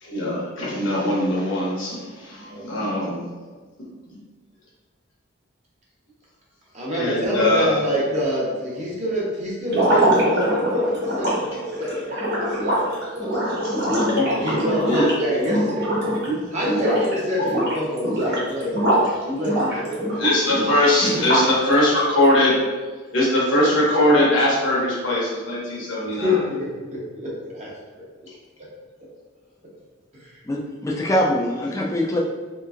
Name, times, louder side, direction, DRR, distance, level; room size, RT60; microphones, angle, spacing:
voice 1, 0.0-3.3 4.1-4.2 6.9-7.8 11.2-11.3 13.6-14.3 14.9-15.1 16.3-16.4 17.4-17.5 20.2-22.6 23.1-26.4, left 1 dB, 75° left, -5 dB, 1.0 m, -21 dB
voice 2, 6.7-13.5 14.2-16.0 16.5-18.9 19.2-20.2 21.1-21.2 26.1-28.3 30.1-30.4, equal, 35° right, -5 dB, 0.8 m, -27 dB
sound 1, 9.7-16.3 16.6-17.1 17.4-19.1 19.4-21.6, equal, 55° right, 1.1 m, -23 dB
voice 3, 30.5-32.2, left 1 dB, 15° left, -2 dB, 0.3 m, -23 dB
3.2 x 2.9 x 2.4 m, 1.4 s
head